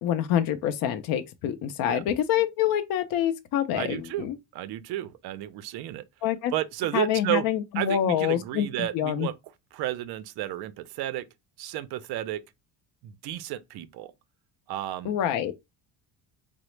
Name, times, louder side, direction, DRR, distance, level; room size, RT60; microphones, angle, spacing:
voice 1, 0.0-4.4 6.2-6.5 6.9-9.3 15.0-15.5, left 10 dB, 55° left, 0.5 m, -26 dB
voice 2, 3.7-6.0 6.5-7.4 7.7-9.3 9.7-11.3 11.6-12.4 13.0-14.1 14.7-15.1, right 13 dB, 60° right, 0.5 m, -32 dB
3.7 x 2.0 x 3.1 m
cardioid pair, 150°, 44 cm